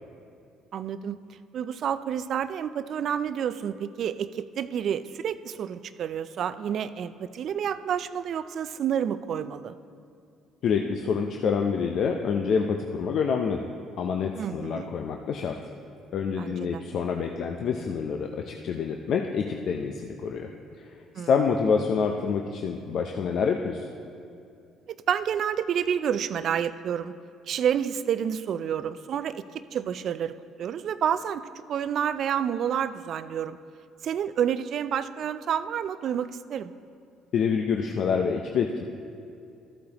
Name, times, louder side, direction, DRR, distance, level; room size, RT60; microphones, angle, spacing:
voice 1, 0.7-1.2 1.5-9.7 14.4-14.9 16.4-16.8 21.2-21.3 25.1-27.1 27.5-29.4 29.7-31.4 31.7-33.6 34.0-36.7, right 8 dB, 60° right, 14 dB, 0.3 m, -29 dB
voice 2, 10.6-13.7 14.0-15.6 16.1-20.5 20.8-23.9 37.3-38.8, left 6 dB, 60° left, 3 dB, 0.5 m, -27 dB
14.0 x 8.3 x 2.9 m, 2.5 s
hypercardioid pair, 60°, 0 cm